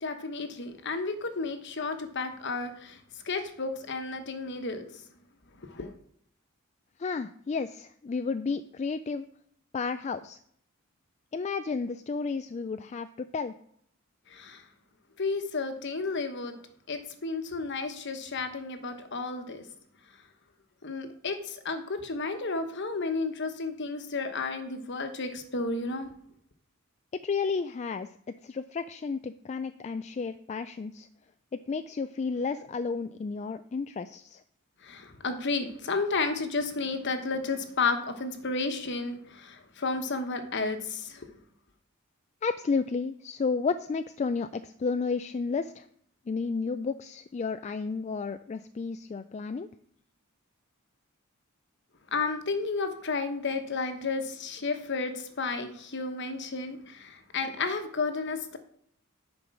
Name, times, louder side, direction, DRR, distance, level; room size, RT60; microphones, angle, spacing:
voice 1, 0.0-3.0 3.2-4.8 5.6-5.9 14.3-14.6 15.2-16.6 16.9-19.6 20.8-26.1 34.8-41.3 52.1-58.6, left 3 dB, 55° left, 7 dB, 1.1 m, -32 dB
voice 2, 7.0-9.3 9.7-10.4 11.3-13.6 27.2-31.1 31.5-34.4 42.4-45.9 46.3-49.7, left 4 dB, 30° left, 10 dB, 0.3 m, -32 dB
10.0 x 5.3 x 6.0 m, 0.67 s
head